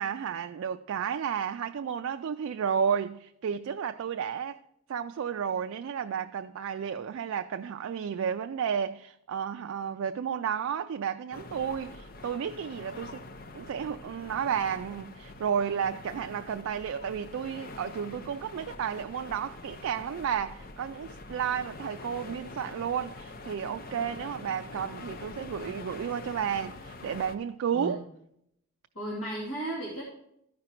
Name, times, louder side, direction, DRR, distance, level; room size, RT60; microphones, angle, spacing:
voice 1, 0.0-4.6 4.9-13.2 13.5-28.0, right 7 dB, 75° right, 0.3 m, -32 dB
sound 1, 11.3-27.4, left 3 dB, 45° left, 0.6 m, -45 dB
voice 2, 28.9-30.0, right 1 dB, 75° left, 2.3 m, -35 dB
13.5 x 5.1 x 4.4 m
head